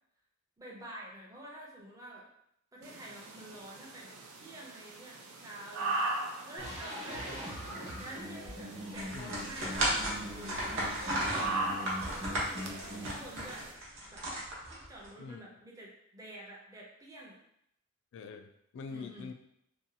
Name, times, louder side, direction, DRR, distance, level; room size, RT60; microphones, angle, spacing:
voice 1, 0.6-2.3 2.7-6.1 6.5-7.5 8.0-11.9 12.2-13.7 14.1-14.2 14.7-17.4 18.9-19.3, right 1 dB, 15° right, -3 dB, 0.5 m, -49 dB
sound 1, 2.8-13.7, right 2 dB, 80° right, 0.5 m, -40 dB
sound 2, 6.6-13.1, equal, 35° right, 1.0 m, -42 dB
voice 2, 7.6-8.0 9.1-9.4 12.2-12.5 15.2-15.4 18.1-19.3, left 5 dB, 60° left, 7 dB, 0.3 m, -46 dB
sound 3, 8.9-15.1, right 1 dB, 65° right, 0.8 m, -34 dB
2.7 x 2.2 x 2.7 m, 0.75 s
head